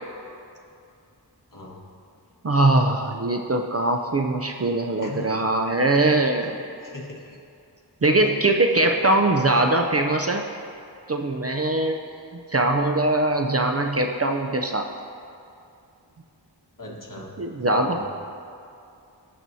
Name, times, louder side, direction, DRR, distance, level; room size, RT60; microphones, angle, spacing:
voice 1, 2.4-6.6 8.0-10.4 11.1-12.0 12.5-14.9 17.4-18.0, right 2 dB, 35° right, 4 dB, 0.5 m, -21 dB
voice 2, 5.0-5.3 6.8-7.4 16.8-17.3 17.7-18.0, left 2 dB, 50° left, -2 dB, 1.6 m, -38 dB
17.5 x 6.0 x 2.7 m, 2.5 s
wide cardioid pair, 50°, 42 cm